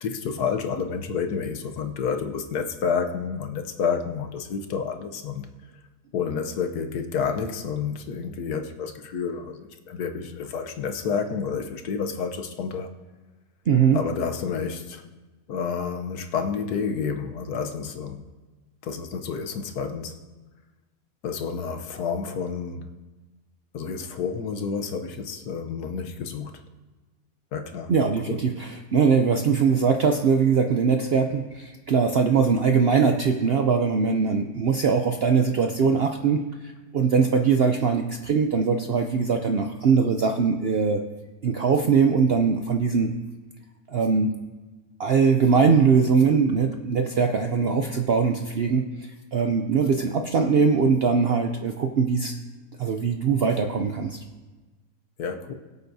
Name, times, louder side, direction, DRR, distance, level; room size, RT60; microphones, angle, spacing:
voice 1, 0.0-5.5 6.1-12.9 13.9-15.1 15.5-18.2 18.8-20.2 21.2-22.9 23.7-26.5 27.5-27.9 28.3-28.4 55.2-55.5, left 6 dB, 75° left, 6 dB, 1.4 m, -29 dB
voice 2, 13.7-14.0 27.9-41.0 41.4-43.1 43.9-44.3 45.0-52.4 52.8-54.2, right 5 dB, 65° right, 5 dB, 0.6 m, -21 dB
21.5 x 8.2 x 2.7 m, 1.2 s
omnidirectional pair, 1.7 m